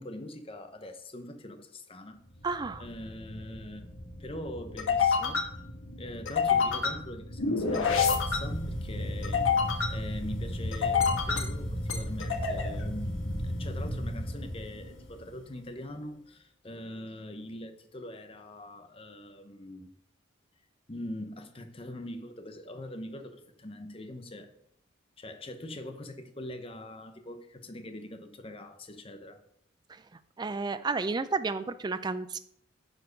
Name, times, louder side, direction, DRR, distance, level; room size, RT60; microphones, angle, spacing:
voice 1, 0.0-2.2 2.8-5.4 6.0-9.5 9.9-19.9 20.9-24.5 25.2-29.4, left 1 dB, 25° left, 0.8 m, -43 dB
sound 1, 2.4-15.2, left 4 dB, 85° left, 1.2 m, -30 dB
voice 2, 2.4-2.9 29.9-30.0 30.4-32.4, right 4 dB, 20° right, 0.3 m, -31 dB
9.7 x 4.5 x 5.2 m
head